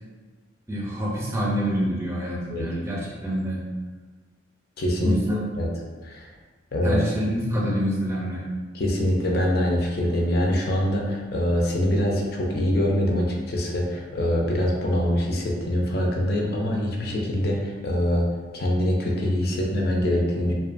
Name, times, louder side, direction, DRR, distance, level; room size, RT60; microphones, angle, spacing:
voice 1, 0.7-3.6 5.0-5.5 6.8-8.4, equal, 15° right, -5 dB, 0.5 m, -26 dB
voice 2, 4.8-5.2 5.5-5.7 6.0-6.3 6.7-7.0 8.7-18.3 18.5-20.5, left 1 dB, 50° left, -1 dB, 0.4 m, -24 dB
2.7 x 2.2 x 2.4 m, 1.4 s
head